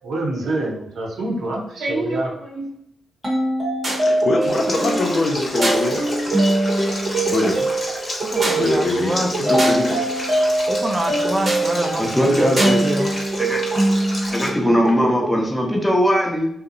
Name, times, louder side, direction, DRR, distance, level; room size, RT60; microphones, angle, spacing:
voice 1, 0.0-2.8, right 2 dB, 80° right, -2 dB, 0.6 m, -26 dB
sound 1, 3.2-15.4, right 1 dB, 50° right, 0.8 m, -22 dB
voice 2, 4.0-6.0 7.3-7.7 8.6-10.0 12.3-12.6, left 2 dB, 60° left, 2 dB, 0.5 m, -23 dB
Stream, 4.5-14.5, left 1 dB, 45° left, 0.9 m, -31 dB
voice 3, 8.3-9.6 10.7-13.1, right 1 dB, 25° right, 4 dB, 0.5 m, -26 dB
voice 4, 12.0-12.8 13.4-13.6 14.3-16.5, equal, 10° left, 0 dB, 0.7 m, -19 dB
2.6 x 2.0 x 2.5 m, 0.75 s
supercardioid pair, 45°, 0 cm